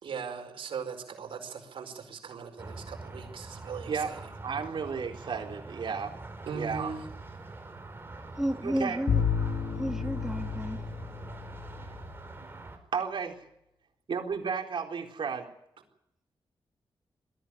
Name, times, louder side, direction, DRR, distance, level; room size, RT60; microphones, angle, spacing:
voice 1, 0.0-4.3 6.4-7.0, right 6 dB, 85° right, 4.8 m, -39 dB
sound 1, 2.6-12.8, right 2 dB, 25° right, 4.7 m, -44 dB
voice 2, 4.4-6.2 6.5-6.9 8.6-9.0 9.7-9.8 11.8-12.1 12.4-12.5 12.9-13.5 14.1-15.5, right 6 dB, 65° right, 4.1 m, -33 dB
voice 3, 8.4-9.2 9.8-10.8, equal, 5° right, 1.7 m, -32 dB
Bowed string instrument, 9.1-12.1, left 6 dB, 75° left, 1.8 m, -31 dB
21.5 x 14.5 x 10.0 m
cardioid pair, 90°, 9 cm